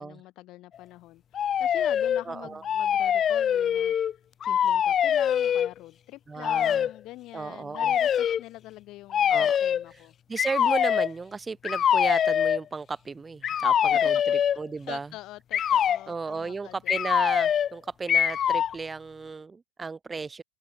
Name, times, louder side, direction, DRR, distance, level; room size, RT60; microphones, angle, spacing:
voice 1, 0.0-3.9 4.4-10.1 14.1-14.2 14.9-17.0, left 17 dB, 50° left, 4.2 m, -44 dB
sound 1, 1.3-2.2 2.6-4.1 4.4-5.7 6.4-6.9 7.7-8.4 9.1-9.8 10.4-11.1 11.6-12.6 13.4-14.6 15.5-16.0 16.9-17.7 18.1-18.7, left 9 dB, 35° left, 1.0 m, -24 dB
voice 2, 2.2-2.6 6.3-6.8 7.3-7.9 9.3-9.6 10.3-15.1 16.1-20.4, right 4 dB, 15° right, 0.6 m, -34 dB
open air
hypercardioid pair, 90°, 0 cm